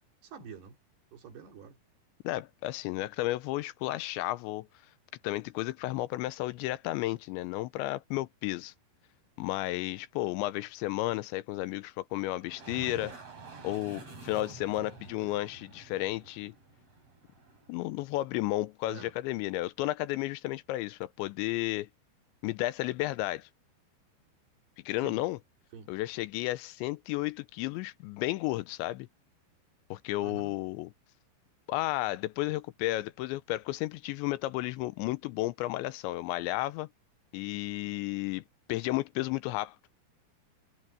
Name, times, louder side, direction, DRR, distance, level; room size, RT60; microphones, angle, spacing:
voice 1, 0.2-0.8 1.1-1.8 18.8-19.1 25.0-25.2 25.7-25.9 30.2-30.5, right 6 dB, 65° right, 5.1 m, -46 dB
voice 2, 2.2-4.7 5.2-8.7 9.4-13.2 13.6-16.5 17.7-21.9 22.4-23.5 24.9-25.4 25.9-29.1 29.9-30.9 31.7-36.9 37.3-38.4 38.7-39.8, left 17 dB, 80° left, 2.9 m, -33 dB
sound 1, 12.4-18.0, right 3 dB, 35° right, 5.7 m, -48 dB
omnidirectional pair, 5.3 m